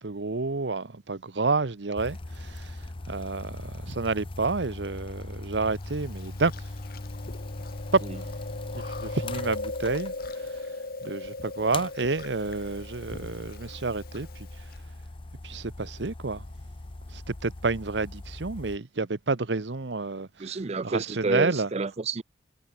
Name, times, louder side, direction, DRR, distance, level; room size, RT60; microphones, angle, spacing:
voice 1, 0.0-6.5 7.9-8.0 8.7-10.6 11.0-14.5 15.4-16.4 17.1-20.6 20.8-21.7, right 3 dB, 90° right, 1.0 m, -29 dB
sound 1, 2.0-10.6 11.7-18.8, left 2 dB, 30° left, 0.7 m, -40 dB
Chewing mastication, 5.8-14.8, left 2 dB, 55° left, 1.8 m, -39 dB
voice 2, 20.4-22.2, right 3 dB, 40° right, 0.5 m, -29 dB
head